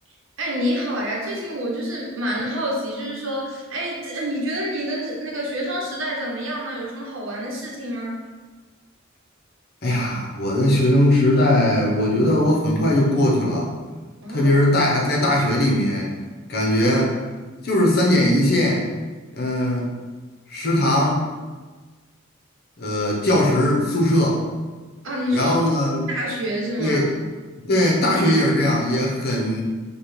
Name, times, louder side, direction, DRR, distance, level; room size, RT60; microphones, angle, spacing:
voice 1, 0.4-8.2 14.2-14.5 25.0-25.6 26.1-27.0, equal, 75° right, -2 dB, 0.9 m, -27 dB
voice 2, 9.8-13.7 14.3-16.1 16.5-17.2 17.6-18.9 19.3-19.9 20.5-21.2 22.8-24.4 25.3-26.0 26.8-27.1 27.7-29.6, left 1 dB, 50° left, -2 dB, 0.8 m, -19 dB
5.4 x 2.3 x 3.2 m, 1.3 s
head